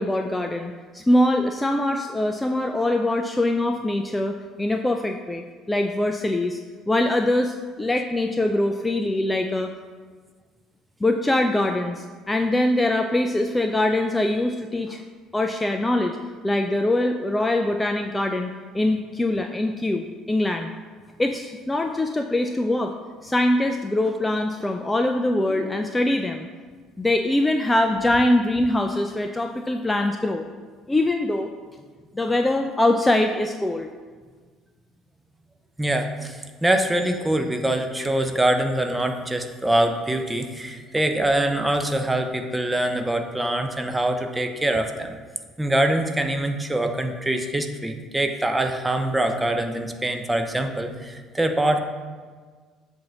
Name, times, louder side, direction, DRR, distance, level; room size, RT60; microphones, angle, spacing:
voice 1, 0.0-6.6 6.9-9.7 11.0-15.0 15.3-16.2 16.4-20.7 21.2-22.9 23.2-26.5 27.0-30.5 30.9-31.5 32.1-33.9, left 1 dB, 15° left, 5 dB, 0.4 m, -23 dB
voice 2, 35.8-45.1 45.6-51.8, right 1 dB, 10° right, 6 dB, 0.7 m, -24 dB
7.6 x 2.7 x 5.9 m, 1.5 s
figure-of-eight pair, 55°, 0 cm